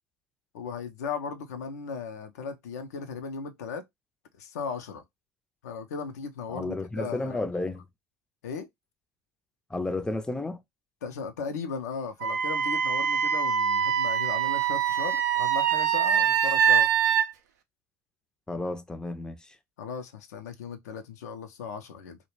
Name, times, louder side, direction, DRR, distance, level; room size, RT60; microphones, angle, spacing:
voice 1, 0.5-3.8 4.4-5.0 5.6-7.4 8.4-8.7 11.0-16.9 19.8-22.2, left 5 dB, 85° left, 0.4 m, -37 dB
voice 2, 6.5-7.8 9.7-10.6 18.5-19.6, left 2 dB, 10° left, 0.4 m, -32 dB
Wind instrument woodwind instrument, 12.2-17.3, right 8 dB, 80° right, 0.4 m, -24 dB
2.2 x 2.0 x 2.9 m
hypercardioid pair, 65°, 9 cm